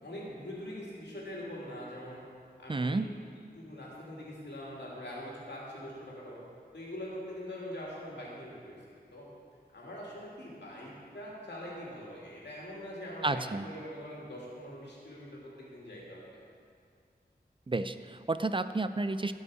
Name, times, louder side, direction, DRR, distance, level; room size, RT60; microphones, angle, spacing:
voice 1, 0.0-2.2 2.6-3.1 3.5-6.4 6.7-9.3 9.7-16.2, equal, 85° left, -5 dB, 2.4 m, -43 dB
voice 2, 2.7-3.1 13.2-13.7 17.7-19.3, right 2 dB, 30° right, 11 dB, 0.4 m, -31 dB
15.0 x 5.4 x 4.8 m, 2.3 s
wide cardioid pair, 45°, 17 cm